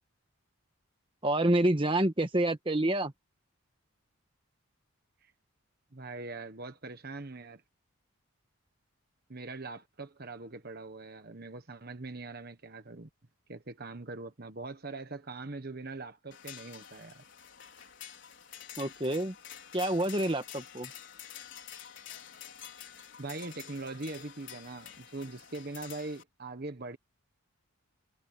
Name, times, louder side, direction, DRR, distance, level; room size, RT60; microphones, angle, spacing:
voice 1, 1.2-3.1 18.8-19.3 19.7-20.9, right 1 dB, 25° right, 1.5 m, -28 dB
voice 2, 5.9-7.6 9.3-13.1 13.5-17.2 23.2-27.0, right 3 dB, 45° right, 1.3 m, -42 dB
sound 1, 16.3-26.2, left 10 dB, 55° left, 4.9 m, -48 dB
head